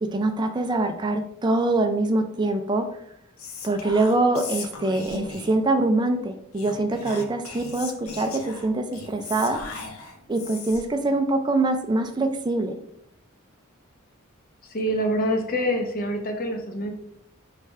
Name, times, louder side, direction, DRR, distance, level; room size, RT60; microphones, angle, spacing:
voice 1, 0.0-2.9 3.6-9.6 10.3-12.7, right 2 dB, 20° right, 6 dB, 0.4 m, -24 dB
Whispering, 3.4-5.7 6.5-11.0, left 3 dB, 75° left, 0.8 m, -38 dB
voice 2, 14.7-16.9, equal, 40° left, 3 dB, 0.9 m, -26 dB
4.9 x 3.3 x 3.2 m, 0.73 s
head